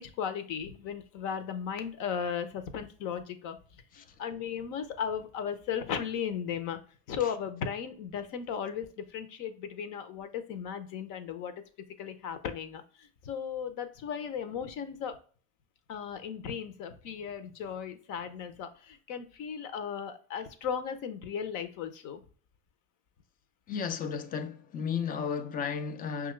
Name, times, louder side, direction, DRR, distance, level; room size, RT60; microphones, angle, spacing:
voice 1, 0.0-3.6 4.2-6.8 7.1-11.5 12.0-15.1 15.9-22.2, left 7 dB, 50° left, 0.8 m, -36 dB
voice 2, 23.7-26.3, left 6 dB, 20° left, 0.4 m, -33 dB
5.5 x 2.4 x 3.1 m
hypercardioid pair, 105°, 40 cm